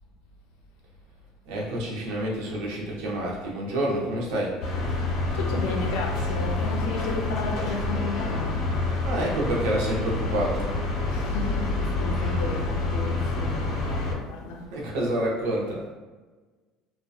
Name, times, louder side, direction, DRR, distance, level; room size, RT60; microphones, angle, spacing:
voice 1, 1.5-4.6 9.0-10.7 14.7-15.8, right 1 dB, 80° right, -3 dB, 0.7 m, -28 dB
sound 1, 4.6-14.1, left 2 dB, 60° left, 0.8 m, -27 dB
voice 2, 5.3-8.6 11.1-14.6, left 3 dB, 85° left, 1 dB, 0.4 m, -33 dB
2.7 x 2.1 x 2.3 m, 1.3 s
cardioid pair, 125°, 0 cm